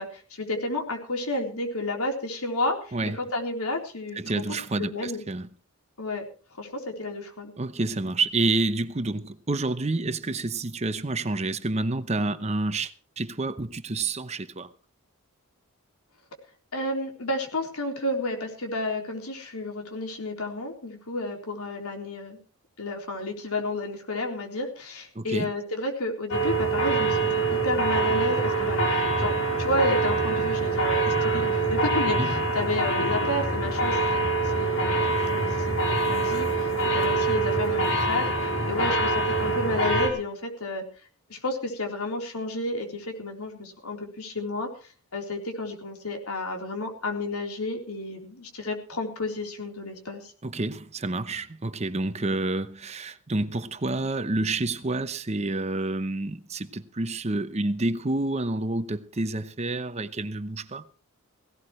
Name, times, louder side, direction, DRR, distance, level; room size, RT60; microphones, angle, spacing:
voice 1, 0.0-4.2 4.8-5.2 6.0-6.3 6.6-7.5 16.7-22.4 22.8-40.8 41.3-44.7 45.1-50.3, left 2 dB, 85° left, 3.8 m, -31 dB
voice 2, 4.2-5.5 7.6-14.7 25.1-25.5 32.2-32.3 50.4-60.8, right 2 dB, 30° right, 0.8 m, -29 dB
sound 1, 26.3-40.1, right 2 dB, 65° left, 4.6 m, -25 dB
17.5 x 17.0 x 3.2 m
head